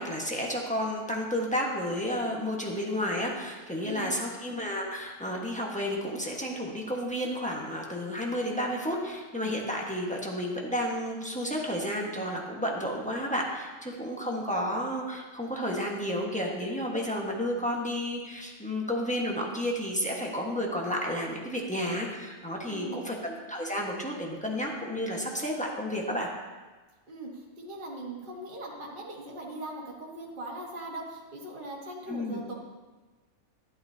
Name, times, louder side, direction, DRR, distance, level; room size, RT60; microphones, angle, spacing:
voice 1, 0.0-26.3 32.1-32.4, equal, 5° left, -2 dB, 1.3 m, -31 dB
voice 2, 3.8-4.1 22.7-23.1 27.1-32.5, right 1 dB, 35° right, -3 dB, 1.6 m, -40 dB
11.5 x 11.0 x 2.8 m, 1.3 s
omnidirectional pair, 1.5 m